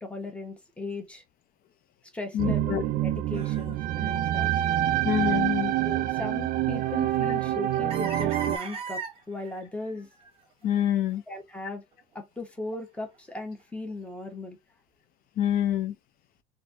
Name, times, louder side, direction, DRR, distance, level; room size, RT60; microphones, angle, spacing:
voice 1, 0.0-1.2 2.1-4.6 5.8-10.1 11.3-11.8 12.1-14.6, left 2 dB, 5° left, 1.0 m, -38 dB
voice 2, 2.3-2.8 5.0-5.7 10.6-11.2 15.4-16.0, left 10 dB, 45° left, 0.6 m, -26 dB
sound 1, 2.4-8.6, right 13 dB, 45° right, 0.4 m, -26 dB
sound 2, 3.3-3.8 4.1-4.2 4.7-4.8 6.1-7.0 7.4-7.5 7.9-10.3 11.4-11.5, right 5 dB, 30° right, 1.0 m, -37 dB
4.0 x 2.7 x 2.5 m
cardioid pair, 130°, 20 cm